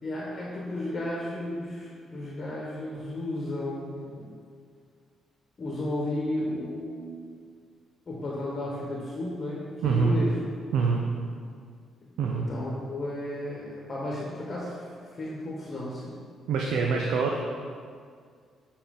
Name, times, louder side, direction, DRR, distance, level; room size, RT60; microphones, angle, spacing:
voice 1, 0.0-4.3 5.6-7.3 8.1-10.4 12.0-16.2, left 1 dB, 40° left, -4 dB, 1.1 m, -34 dB
voice 2, 9.8-10.2 10.7-11.0 12.2-12.5 16.5-17.4, right 5 dB, 85° right, 0 dB, 0.5 m, -25 dB
7.4 x 4.3 x 3.7 m, 2.1 s
cardioid pair, 90°, 0 cm